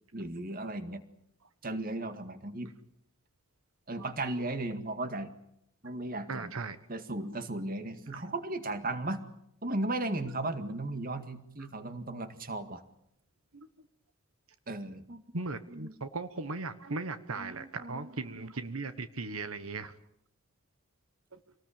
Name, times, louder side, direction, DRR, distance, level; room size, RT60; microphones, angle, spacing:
voice 1, 0.1-1.0 1.6-2.7 3.9-5.3 5.8-6.5 6.9-9.2 9.6-12.8 14.7-15.2 15.7-15.9 17.4-18.5, right 2 dB, 45° right, 9 dB, 2.0 m, -36 dB
voice 2, 6.3-6.8 8.1-8.2 11.6-11.7 13.5-13.7 15.3-20.0 21.3-21.4, right 3 dB, 85° right, 11 dB, 1.3 m, -38 dB
27.0 x 19.5 x 8.8 m, 0.77 s
head